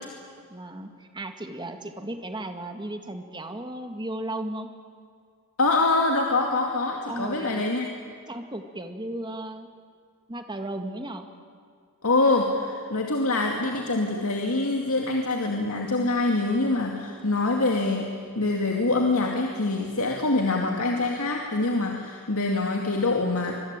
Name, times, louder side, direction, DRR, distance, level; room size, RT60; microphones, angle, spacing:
voice 1, 0.5-4.7 7.1-7.6 8.3-9.7 10.3-11.3, right 1 dB, 20° right, 6 dB, 1.9 m, -35 dB
voice 2, 5.6-7.9 12.0-23.5, left 2 dB, 70° left, 1 dB, 2.4 m, -25 dB
25.5 x 21.5 x 9.0 m, 2.1 s
head